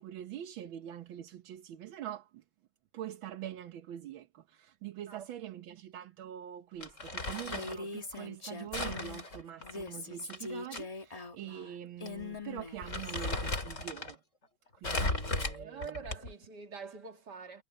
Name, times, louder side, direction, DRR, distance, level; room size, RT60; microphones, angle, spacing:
voice 1, 0.0-2.4 2.9-14.2 14.7-16.0, right 11 dB, 80° right, 1.8 m, -44 dB
voice 2, 5.1-5.6 15.4-17.6, right 5 dB, 55° right, 2.9 m, -46 dB
Crumpling crinkling, 6.8-7.8 8.7-10.8 11.2-11.3 12.1-12.2 12.6-14.1 14.8-16.4, left 2 dB, 35° left, 4.3 m, -36 dB
Female speech woman speaking, 7.4-9.2 9.6-13.4, left 3 dB, 20° left, 1.2 m, -42 dB
omnidirectional pair, 2.1 m